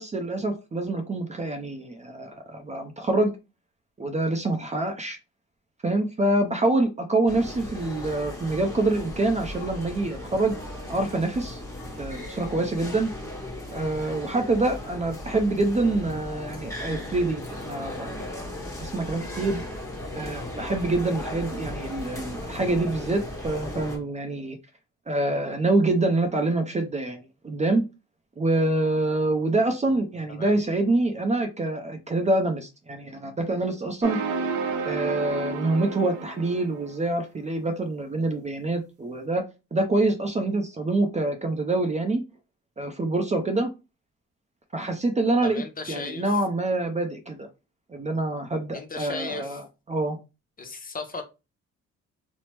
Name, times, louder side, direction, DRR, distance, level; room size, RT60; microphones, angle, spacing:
voice 1, 0.0-3.3 4.0-5.2 5.8-10.6 10.9-11.6 12.0-13.1 13.7-18.2 18.8-19.6 20.1-24.6 25.1-27.8 28.4-34.2 34.8-39.4 39.7-42.2 42.8-43.7 44.7-45.6 45.9-47.5 47.9-49.6 49.9-50.2, right 2 dB, 25° right, 5 dB, 0.5 m, -26 dB
sound 1, 7.3-24.0, left 1 dB, 10° left, 1.2 m, -36 dB
sound 2, 34.0-37.0, right 4 dB, 85° right, 0.7 m, -31 dB
voice 2, 45.4-46.3 48.7-49.6 50.6-51.2, left 3 dB, 30° left, 5 dB, 0.7 m, -36 dB
2.9 x 2.0 x 3.2 m, 0.27 s
cardioid pair, 90°, 30 cm